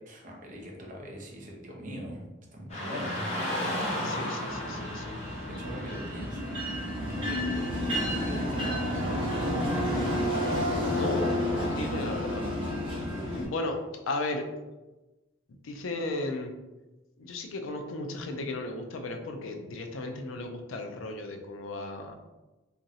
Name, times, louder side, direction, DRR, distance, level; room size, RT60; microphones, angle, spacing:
voice 1, 0.1-2.2 2.5-3.3 5.4-6.6 7.0-10.0 13.2-13.3, equal, 40° right, -1 dB, 0.6 m, -41 dB
Car passing by / Traffic noise roadway noise, 2.7-11.7, left 1 dB, 35° left, 0.9 m, -37 dB
voice 2, 4.0-5.2 10.6-12.5 13.3-13.8 14.1-14.4 15.6-16.5 17.2-22.1, left 2 dB, 85° left, 4 dB, 0.4 m, -35 dB
sound 1, 4.5-13.4, left 1 dB, 25° right, 1.0 m, -30 dB
3.0 x 2.5 x 2.7 m, 1.1 s
head